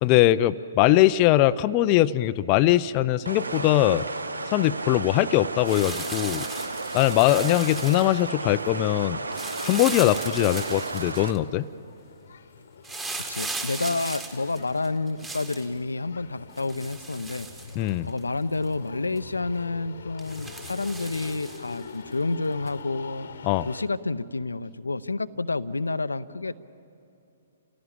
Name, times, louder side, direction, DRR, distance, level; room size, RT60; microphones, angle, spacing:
voice 1, 0.0-4.1 4.5-6.5 6.9-9.2 9.6-11.6 17.8-18.1 23.4-23.7, left 15 dB, 30° left, 13 dB, 0.5 m, -21 dB
sound 1, 3.3-11.3, right 3 dB, 80° right, 1.0 m, -33 dB
sound 2, 5.6-8.3 9.3-11.4 12.8-15.7 16.6-18.2 18.6-18.7 19.2-19.3 20.2-21.8 22.7-22.8, right 3 dB, 10° right, 1.9 m, -37 dB
sound 3, 10.4-23.9, left 5 dB, 65° left, 1.1 m, -45 dB
voice 2, 13.3-17.5 18.0-23.3 23.6-26.6, left 3 dB, 80° left, 13 dB, 0.7 m, -29 dB
29.0 x 16.5 x 8.8 m, 2.8 s
figure-of-eight pair, 125°, 0 cm